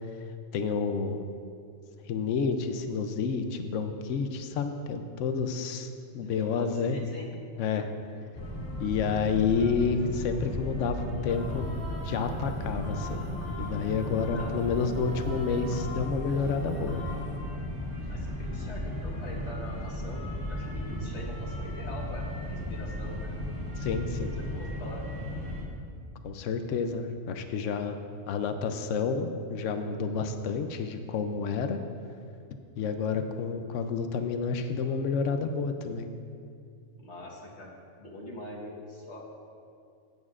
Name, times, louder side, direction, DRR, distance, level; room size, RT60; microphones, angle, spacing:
voice 1, 0.5-1.2 2.1-7.0 7.6-7.9 8.8-11.7 12.0-13.2 13.6-17.0 23.8-24.4 26.2-28.0 28.3-31.8 32.8-36.1, left 5 dB, 80° left, 7 dB, 1.0 m, -30 dB
voice 2, 6.2-7.3 14.3-14.5 18.1-23.3 24.2-25.0 37.0-39.3, left 1 dB, 65° left, -2 dB, 1.8 m, -43 dB
sound 1, 8.3-25.6, equal, 15° left, 2.0 m, -35 dB
sound 2, 11.3-17.4, left 2 dB, 50° left, 2.0 m, -42 dB
15.5 x 8.5 x 2.4 m, 2.4 s
omnidirectional pair, 1.3 m